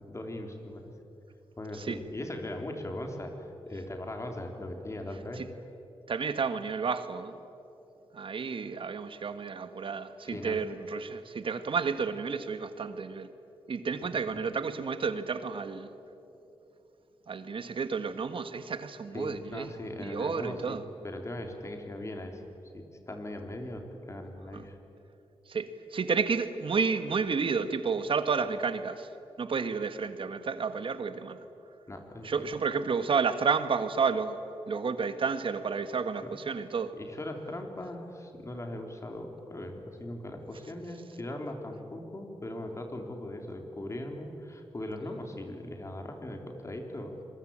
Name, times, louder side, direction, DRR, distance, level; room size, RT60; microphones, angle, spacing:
voice 1, 0.1-0.9 1.6-5.4 10.3-10.6 14.0-14.4 19.1-20.8 21.0-22.4 22.7-24.8 31.9-32.5 37.0-47.2, left 1 dB, 30° left, 3 dB, 3.7 m, -39 dB
voice 2, 6.1-7.4 8.1-13.3 13.7-15.9 17.3-20.8 24.5-24.7 25.5-29.1 29.4-31.5 32.2-34.4 34.7-36.9, right 5 dB, 60° right, 11 dB, 1.5 m, -31 dB
26.0 x 22.5 x 8.9 m, 3.0 s
wide cardioid pair, 95°, 10 cm